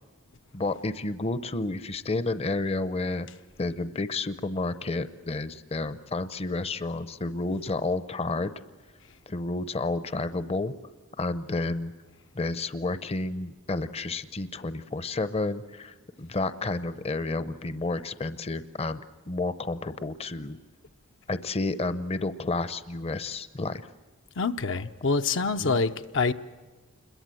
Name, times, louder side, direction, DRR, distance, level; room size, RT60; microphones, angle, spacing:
voice 1, 0.5-3.3 3.6-8.5 9.3-10.7 11.2-11.9 12.3-20.6 21.3-23.8 25.6-25.8, left 2 dB, 30° left, 0.7 m, -31 dB
voice 2, 24.4-26.3, left 4 dB, 65° left, 0.7 m, -26 dB
27.5 x 22.0 x 7.7 m
head